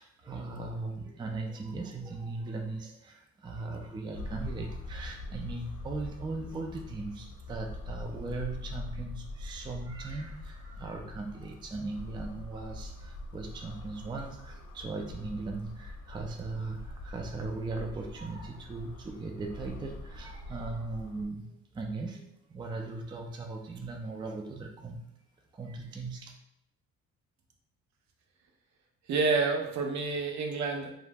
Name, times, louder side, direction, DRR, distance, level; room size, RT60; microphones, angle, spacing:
voice 1, 0.0-25.0 25.5-26.4, right 3 dB, 15° right, 2 dB, 0.3 m, -38 dB
sound 1, 4.1-21.3, left 2 dB, 70° left, 0.5 m, -43 dB
voice 2, 29.1-30.9, right 4 dB, 65° right, 2 dB, 0.6 m, -28 dB
2.4 x 2.0 x 3.3 m, 0.77 s
cardioid pair, 90°, 30 cm